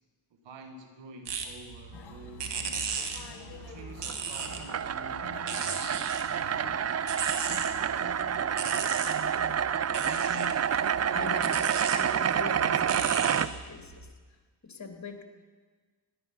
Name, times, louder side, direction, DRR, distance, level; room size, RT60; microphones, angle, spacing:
voice 1, 0.3-3.0 3.7-5.9 6.4-7.0 7.6-9.1, right 2 dB, 90° right, 6 dB, 1.4 m, -49 dB
sound 1, 1.3-14.1, right 5 dB, 75° right, 1.5 m, -38 dB
sound 2, 1.9-12.6, left 6 dB, 65° left, 1.5 m, -47 dB
sound 3, 4.0-13.5, right 8 dB, 40° right, 0.5 m, -28 dB
voice 2, 11.1-14.1 14.6-15.2, left 4 dB, 40° left, 5 dB, 2.2 m, -42 dB
17.0 x 11.0 x 5.6 m, 1.4 s
cardioid pair, 50°, 43 cm